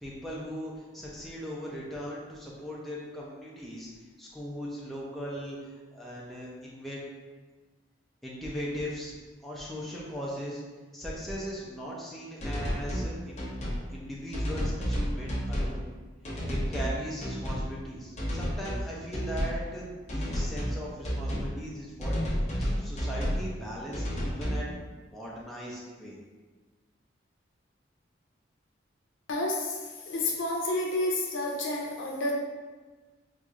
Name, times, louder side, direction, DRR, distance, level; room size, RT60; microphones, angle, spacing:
voice 1, 0.0-3.9 4.2-5.6 5.9-7.0 8.2-9.1 9.4-10.6 10.9-13.5 13.9-15.8 16.5-26.2, equal, ahead, -6 dB, 0.5 m, -39 dB
sound 1, 12.4-13.1 13.4-13.8 14.3-15.8 16.2-16.9 17.2-17.7 18.2-18.8 19.1-19.6 20.1-20.8 21.0-21.5 22.0-23.4 23.9-24.6, equal, 35° left, 0.9 m, -31 dB
voice 2, 29.3-32.3, left 2 dB, 85° left, -1 dB, 0.7 m, -30 dB
4.5 x 2.6 x 2.4 m, 1.3 s
head